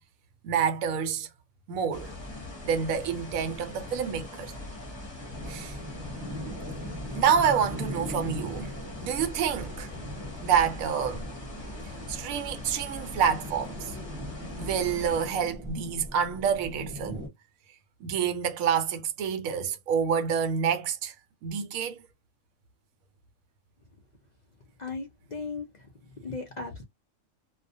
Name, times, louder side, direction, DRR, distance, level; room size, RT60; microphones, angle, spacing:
voice 1, 0.4-1.3 1.7-2.1 2.6-4.5 5.5-5.8 7.1-8.7 9.0-9.9 10.4-11.3 12.1-14.0 14.6-17.3 18.0-21.1 21.4-22.0, right 7 dB, 75° right, 1.0 m, -28 dB
sound 1, 1.9-15.3, left 2 dB, 25° left, 0.7 m, -41 dB
sound 2, 5.3-17.3, equal, 15° right, 0.8 m, -40 dB
voice 2, 24.8-25.9 26.2-26.8, left 4 dB, 65° left, 0.4 m, -37 dB
2.3 x 2.1 x 2.5 m
omnidirectional pair, 1.5 m